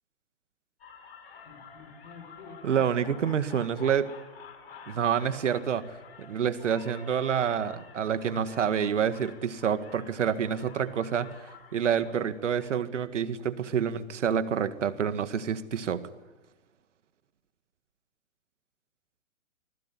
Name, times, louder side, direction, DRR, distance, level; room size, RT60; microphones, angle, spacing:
sound 1, 0.8-12.8, left 6 dB, 50° left, 5.2 m, -49 dB
voice 1, 2.6-4.1 4.9-5.9 6.2-16.1, right 8 dB, 60° right, 11 dB, 2.0 m, -28 dB
26.5 x 20.0 x 9.7 m, 1.2 s
figure-of-eight pair, 135°, 40 cm